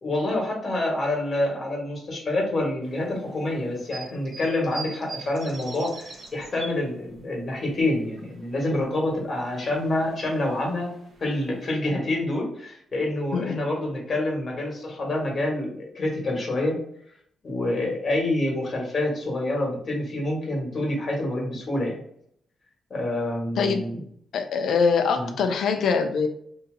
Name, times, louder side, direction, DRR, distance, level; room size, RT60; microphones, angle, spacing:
voice 1, 0.0-10.9 11.2-16.8 17.4-22.0 22.9-24.0 25.1-25.3, left 1 dB, 40° left, -1 dB, 1.4 m, -27 dB
sound 1, 2.8-7.4 7.7-8.8 9.1-11.7, right 3 dB, 50° right, 0.7 m, -43 dB
voice 2, 24.3-26.3, left 5 dB, 75° left, 6 dB, 0.5 m, -23 dB
2.8 x 2.7 x 3.8 m, 0.67 s
cardioid pair, 125°, 0 cm